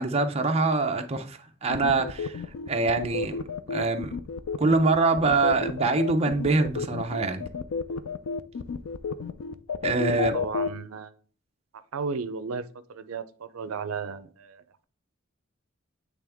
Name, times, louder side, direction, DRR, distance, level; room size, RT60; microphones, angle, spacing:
voice 1, 0.0-3.4 3.7-4.1 4.6-7.4 9.8-10.3, right 3 dB, 30° right, 0.6 m, -24 dB
sound 1, 1.7-10.7, left 4 dB, 85° left, 0.5 m, -31 dB
voice 2, 10.1-11.1 11.9-14.8, right 5 dB, 85° right, 0.5 m, -35 dB
8.3 x 3.4 x 3.5 m
head